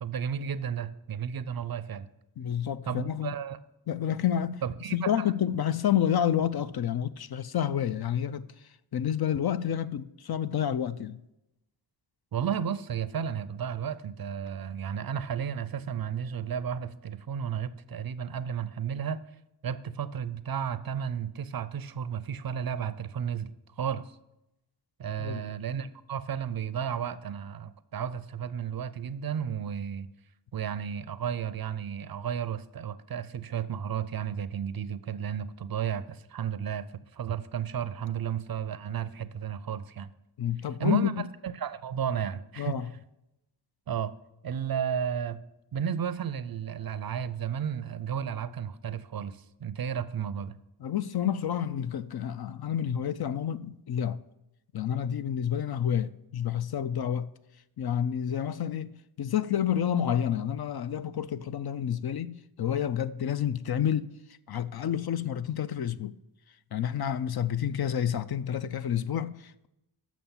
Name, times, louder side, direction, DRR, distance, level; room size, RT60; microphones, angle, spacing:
voice 1, 0.0-2.1 2.9-3.6 4.6-5.1 12.3-19.2 19.6-23.5 23.8-24.2 25.0-30.1 30.5-36.9 37.1-40.1 40.8-41.1 41.4-42.8 43.9-44.1 44.4-45.4 45.7-50.6, right 8 dB, 50° right, 0.5 m, -33 dB
voice 2, 2.4-3.3 3.9-4.6 4.9-8.5 8.9-11.2 25.2-25.4 40.4-41.1 42.6-42.9 50.8-54.2 54.7-57.3 57.8-64.1 64.5-66.1 66.7-69.7, left 9 dB, 55° left, 0.5 m, -29 dB
7.1 x 6.0 x 7.1 m
cardioid pair, 65°, 47 cm